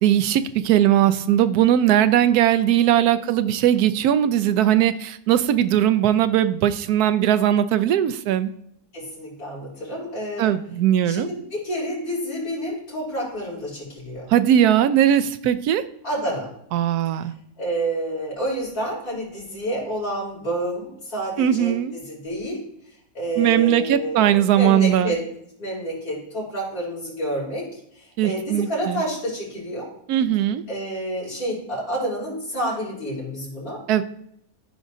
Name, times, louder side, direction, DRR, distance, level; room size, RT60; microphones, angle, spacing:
voice 1, 0.0-8.5 10.4-11.3 14.3-15.8 16.7-17.3 21.4-21.9 23.4-25.1 28.2-29.0 30.1-30.6 33.9-34.0, right 11 dB, 75° right, 11 dB, 1.1 m, -19 dB
voice 2, 8.9-10.5 11.1-14.3 16.0-16.5 17.6-22.6 23.1-25.2 25.6-27.6 28.2-29.9 30.7-33.8, right 1 dB, 60° left, -6 dB, 4.3 m, -29 dB
14.0 x 4.9 x 2.7 m, 0.73 s
omnidirectional pair, 1.8 m